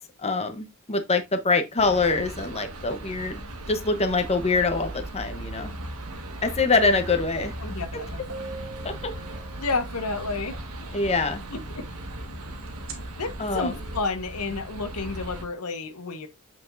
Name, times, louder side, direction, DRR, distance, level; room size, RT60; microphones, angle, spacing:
voice 1, 0.2-5.7 6.4-7.5 8.8-9.1 10.9-11.4 13.4-13.7, left 3 dB, 30° left, 0.9 m, -24 dB
sound 1, 1.8-15.4, right 1 dB, 85° right, 1.6 m, -37 dB
voice 2, 7.6-8.2 9.6-10.6 11.5-11.8 13.2-16.3, left 3 dB, 85° left, 1.2 m, -31 dB
sound 2, 8.3-10.0 12.7-12.9, right 3 dB, 65° right, 1.9 m, -40 dB
7.4 x 5.9 x 2.6 m
head